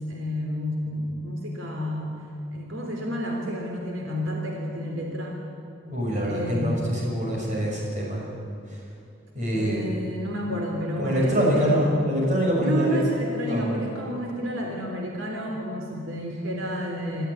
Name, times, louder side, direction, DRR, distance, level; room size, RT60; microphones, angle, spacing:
voice 1, 0.1-2.2 2.5-5.4 6.2-6.8 9.5-12.1 12.6-17.3, equal, 85° right, 1 dB, 3.4 m, -30 dB
voice 2, 5.9-8.2 9.3-9.9 11.0-13.0 13.4-13.6, equal, 40° right, -2 dB, 6.3 m, -24 dB
26.5 x 13.5 x 9.7 m, 2.6 s
head